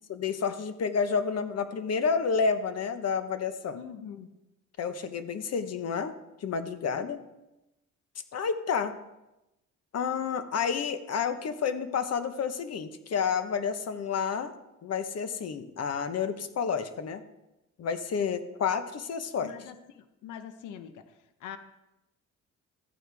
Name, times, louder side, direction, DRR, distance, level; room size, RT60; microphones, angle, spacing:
voice 1, 0.1-3.8 4.8-6.1 6.4-7.2 8.3-8.9 9.9-14.5 14.8-17.2 17.8-19.7, left 6 dB, 55° left, 9 dB, 1.2 m, -30 dB
voice 2, 3.7-4.3 19.4-21.0 21.4-21.6, left 8 dB, 85° left, 9 dB, 0.9 m, -43 dB
14.0 x 9.3 x 3.5 m, 0.94 s
cardioid pair, 90°, 30 cm